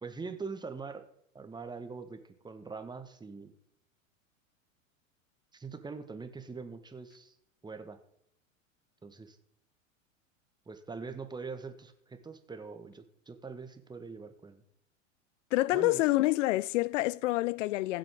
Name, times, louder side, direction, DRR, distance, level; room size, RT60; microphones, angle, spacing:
voice 1, 0.0-1.1 1.3-3.5 5.5-7.3 7.6-8.0 9.0-9.4 10.7-14.6 15.7-16.0, right 4 dB, 10° right, 1.1 m, -43 dB
voice 2, 15.5-18.0, left 18 dB, 65° left, 0.5 m, -27 dB
16.0 x 7.8 x 3.5 m
hypercardioid pair, 95°, 40 cm